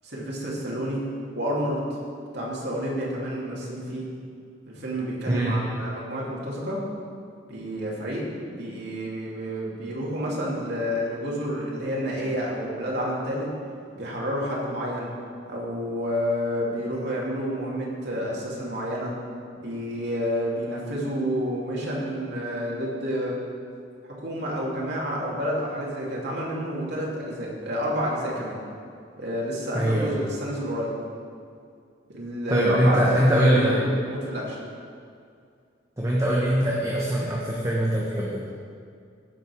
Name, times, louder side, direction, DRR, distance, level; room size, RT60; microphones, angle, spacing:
voice 1, 0.0-1.0 1.3-1.8 2.3-4.0 4.7-6.8 7.5-13.5 13.9-15.1 15.5-19.1 19.6-23.3 24.2-28.6 29.2-30.9 32.1-33.8 34.0-34.6, equal, 60° right, -4 dB, 2.6 m, -29 dB
voice 2, 29.7-30.1 32.5-33.8 36.0-38.4, right 1 dB, 15° right, -5 dB, 1.2 m, -22 dB
15.5 x 5.2 x 6.1 m, 2.3 s
head